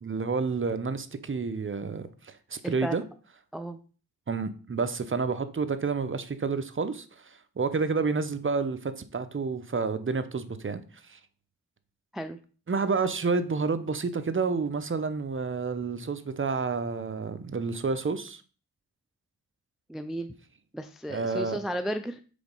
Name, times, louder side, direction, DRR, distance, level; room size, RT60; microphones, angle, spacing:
voice 1, 0.0-3.0 4.3-11.2 12.7-18.4 21.1-21.6, right 4 dB, 35° right, 0.7 m, -30 dB
voice 2, 2.6-3.0 3.5-3.8 12.1-12.4 19.9-20.3 20.7-22.2, equal, ahead, 0.4 m, -34 dB
5.1 x 3.9 x 5.2 m
cardioid pair, 60°, 37 cm